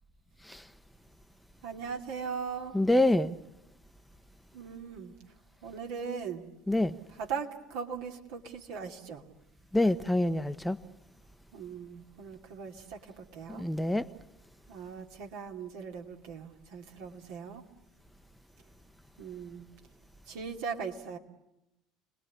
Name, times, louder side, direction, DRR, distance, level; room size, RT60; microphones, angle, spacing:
voice 1, 1.6-2.8 4.5-5.1 5.6-6.4 7.1-9.2 11.5-13.6 14.7-17.6 19.2-19.7 20.3-21.2, right 6 dB, 65° right, 2.6 m, -39 dB
voice 2, 2.7-3.4 6.7-6.9 9.7-10.8 13.6-14.1, left 1 dB, 5° left, 0.9 m, -26 dB
30.0 x 20.0 x 8.5 m
hypercardioid pair, 65°, 0 cm